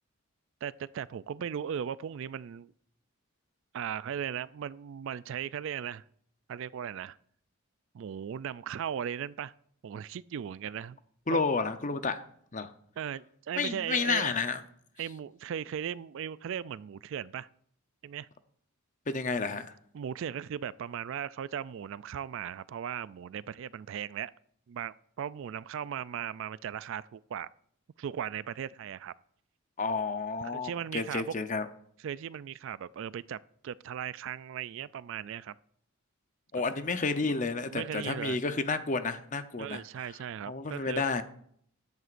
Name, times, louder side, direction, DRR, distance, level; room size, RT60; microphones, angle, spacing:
voice 1, 0.6-2.7 3.7-6.0 6.5-7.2 7.9-9.5 9.8-11.0 11.3-11.4 13.0-14.3 15.0-17.5 18.0-18.3 19.9-24.3 24.7-27.5 28.0-29.1 30.6-31.3 32.0-33.4 33.6-35.5 37.7-38.4 39.6-41.0, right 8 dB, 60° right, 0.3 m, -37 dB
voice 2, 11.3-12.2 12.5-12.7 13.6-14.6 19.1-19.7 29.8-31.7 36.5-39.8 40.5-41.2, left 4 dB, 35° left, 0.7 m, -31 dB
14.0 x 10.5 x 2.5 m
head